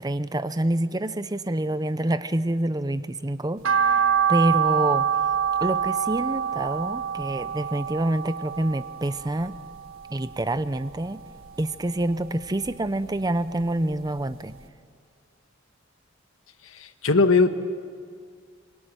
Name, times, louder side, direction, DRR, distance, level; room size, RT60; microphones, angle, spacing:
voice 1, 0.0-4.0 4.3-5.1 5.6-9.6 10.1-11.2 11.6-14.5, right 1 dB, 20° right, 13 dB, 0.6 m, -27 dB
sound 1, 3.6-9.9 10.3-11.5 11.8-13.2 13.6-13.7 14.2-14.3 14.5-14.6, right 7 dB, 75° right, 1.5 m, -25 dB
voice 2, 16.6-17.5, left 3 dB, 80° left, 9 dB, 1.3 m, -20 dB
25.0 x 23.5 x 9.1 m, 2.1 s
head